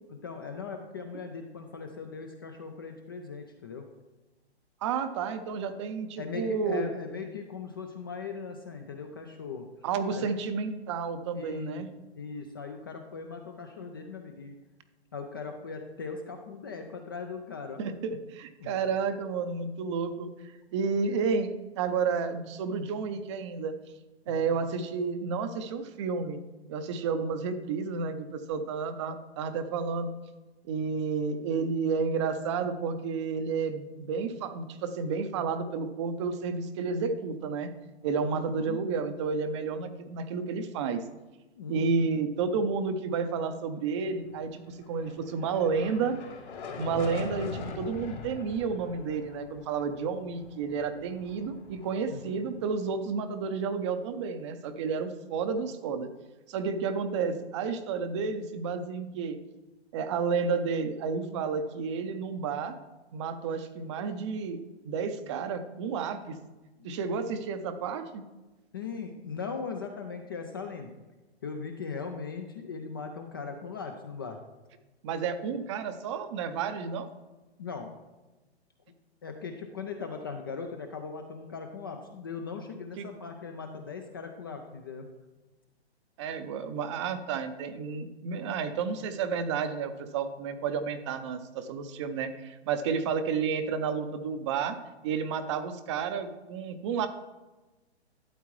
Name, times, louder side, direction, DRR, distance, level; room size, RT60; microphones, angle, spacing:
voice 1, 0.1-3.9 6.2-9.7 10.1-10.3 11.3-11.8 12.2-14.6 15.1-17.8 18.6-18.8 24.3-24.5 38.2-38.8 41.6-42.1 52.1-52.4 66.8-66.9 68.7-70.9 71.4-74.4 77.6-77.9 79.2-85.1, left 5 dB, 20° left, 4 dB, 0.3 m, -39 dB
voice 2, 4.8-6.9 9.8-11.9 13.9-14.0 17.8-20.3 20.7-23.7 24.3-26.4 26.7-30.1 30.6-37.7 38.0-41.0 41.7-46.2 46.8-56.1 56.5-59.4 59.9-62.7 63.1-64.6 64.8-66.4 66.8-68.2 75.0-77.1 83.0-83.1 86.2-94.8 95.0-97.1, right 5 dB, 25° right, 10 dB, 0.6 m, -31 dB
sound 1, 44.7-53.1, left 5 dB, 85° left, 3.3 m, -43 dB
12.0 x 8.1 x 3.1 m, 1.1 s
hypercardioid pair, 140°, 33 cm